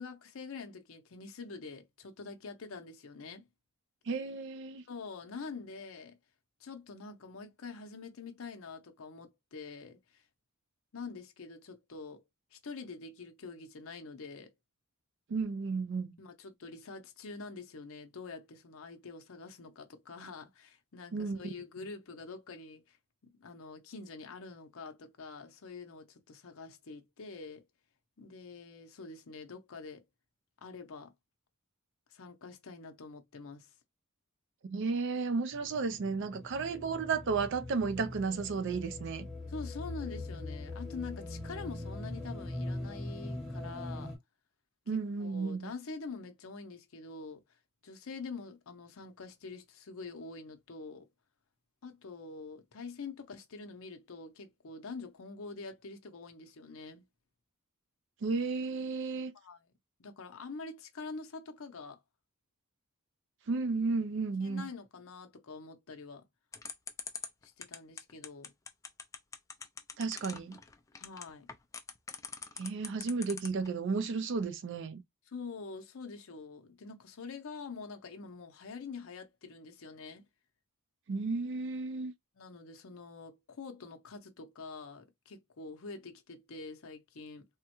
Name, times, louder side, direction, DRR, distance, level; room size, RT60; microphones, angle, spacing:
voice 1, 0.0-3.4 4.9-6.2 6.6-10.2 10.9-12.2 12.5-14.5 16.2-23.0 23.2-27.7 28.2-30.0 30.6-31.1 32.1-33.7 39.5-44.1 44.9-47.4 47.8-51.1 51.8-57.0 59.4-59.6 60.0-62.0 64.4-66.2 67.4-68.5 70.9-71.5 75.3-80.2 82.4-87.5, left 4 dB, 65° left, 0.6 m, -46 dB
voice 2, 4.1-4.8 15.3-16.1 21.1-21.4 34.7-39.3 44.9-45.7 58.2-59.3 63.5-64.7 70.0-70.6 72.6-75.0 81.1-82.1, right 4 dB, 55° right, 0.4 m, -33 dB
sound 1, 35.5-44.2, left 2 dB, ahead, 1.0 m, -41 dB
sound 2, 66.5-73.7, left 5 dB, 15° left, 0.3 m, -42 dB
3.5 x 2.1 x 2.9 m
head